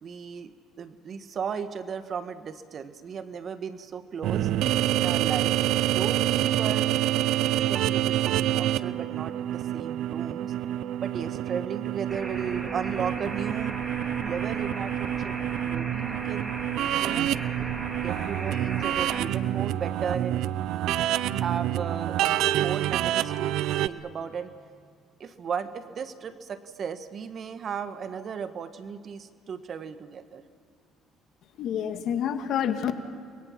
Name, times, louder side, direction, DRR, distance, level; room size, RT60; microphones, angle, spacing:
voice 1, 0.0-4.5 4.9-5.5 5.9-7.0 7.7-10.5 11.0-13.8 14.2-15.4 15.6-16.5 17.0-17.3 18.0-20.4 21.3-23.5 23.8-24.5 25.2-30.4, right 6 dB, 50° right, 10 dB, 1.4 m, -35 dB
sound 1, 4.2-23.9, right 13 dB, 70° right, 0.6 m, -27 dB
sound 2, 12.1-19.2, right 2 dB, 25° right, 4.3 m, -37 dB
voice 2, 31.6-32.9, left 9 dB, 65° left, 7 dB, 1.8 m, -28 dB
29.5 x 22.5 x 6.0 m, 2.1 s
supercardioid pair, 80°, 0 cm